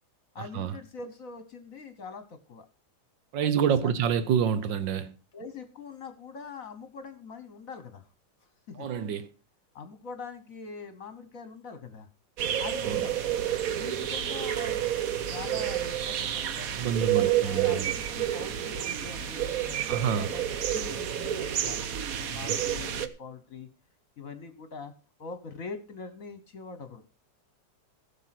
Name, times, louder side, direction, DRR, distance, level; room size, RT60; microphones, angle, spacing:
voice 1, 0.3-2.7 3.4-3.9 5.3-8.1 8.4-8.9 9.7-12.1 12.6-13.3 13.7-23.7 24.2-24.9 25.2-27.0, left 4 dB, 50° left, 1.4 m, -43 dB
voice 2, 3.3-5.1 8.8-9.3 12.8-13.0 16.8-17.9 19.9-20.3 22.4-22.6, right 8 dB, 85° right, 1.6 m, -27 dB
sound 1, 12.4-23.1, right 10 dB, 60° right, 1.2 m, -29 dB
15.5 x 6.4 x 5.8 m
omnidirectional pair, 2.0 m